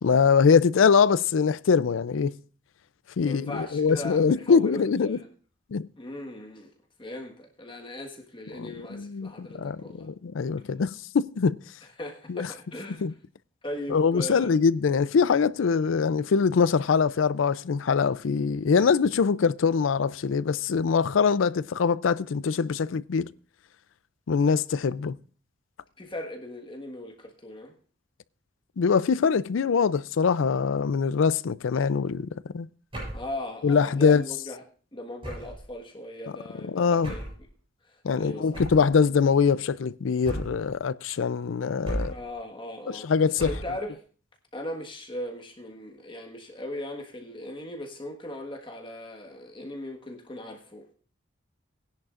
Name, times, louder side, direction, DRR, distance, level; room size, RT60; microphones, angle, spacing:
voice 1, 0.0-2.3 3.2-5.2 5.7-5.9 8.5-11.6 12.3-12.5 13.0-13.1 13.9-23.3 24.3-25.2 28.8-32.7 33.6-34.2 36.6-37.1 38.0-42.2 42.9-43.5, left 5 dB, 85° left, 0.4 m, -23 dB
voice 2, 3.2-5.3 6.0-6.7 7.0-10.1 12.0-13.0 13.6-14.5 26.0-27.7 33.1-34.6 34.9-37.3 37.9-38.5 42.1-43.1 43.4-43.9 44.5-50.8, left 1 dB, 25° left, 1.4 m, -38 dB
sound 1, 32.9-33.3 35.2-35.7 37.0-37.4 38.5-38.9 40.2-40.7 41.8-42.3 43.4-43.8, right 1 dB, 30° right, 7.9 m, -34 dB
19.0 x 10.5 x 2.5 m
head